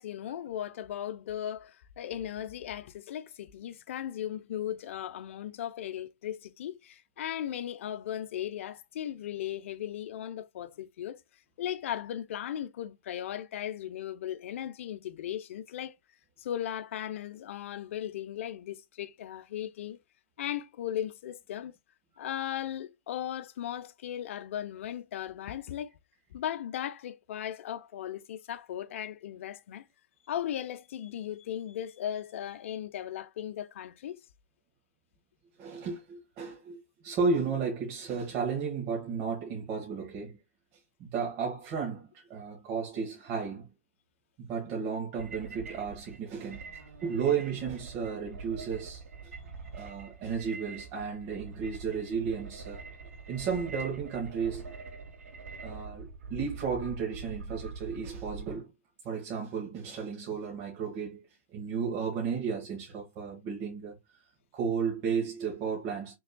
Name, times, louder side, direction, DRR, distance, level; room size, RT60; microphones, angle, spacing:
voice 1, 0.0-11.2 11.6-15.9 16.4-20.0 20.4-21.7 22.2-25.9 26.3-29.8 30.3-34.2, left 10 dB, 60° left, 0.7 m, -37 dB
voice 2, 35.6-40.4 41.0-43.7 44.4-46.6 47.0-49.3 49.7-52.8 53.3-54.7 55.6-58.7 59.0-61.2 61.5-63.9 64.5-66.2, right 6 dB, 35° right, 1.7 m, -33 dB
sound 1, 45.1-58.6, right 4 dB, 85° right, 2.4 m, -44 dB
5.5 x 3.5 x 2.3 m
hypercardioid pair, 140°, 8 cm